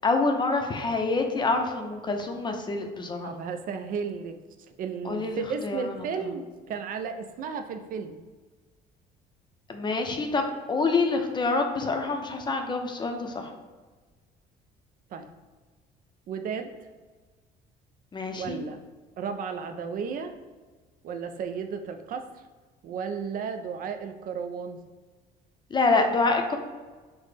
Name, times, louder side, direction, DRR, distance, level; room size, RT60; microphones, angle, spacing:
voice 1, 0.0-3.3 5.0-5.4 5.6-6.0 9.7-13.5 18.1-18.6 25.7-26.6, left 3 dB, 25° left, 4 dB, 0.5 m, -26 dB
voice 2, 3.2-4.4 4.8-8.2 15.1-15.3 16.3-16.9 18.3-18.8 19.2-20.4 21.0-22.3 22.8-24.8, right 6 dB, 55° right, 7 dB, 0.4 m, -34 dB
5.9 x 2.1 x 3.2 m, 1.3 s
cardioid pair, 110°, 17 cm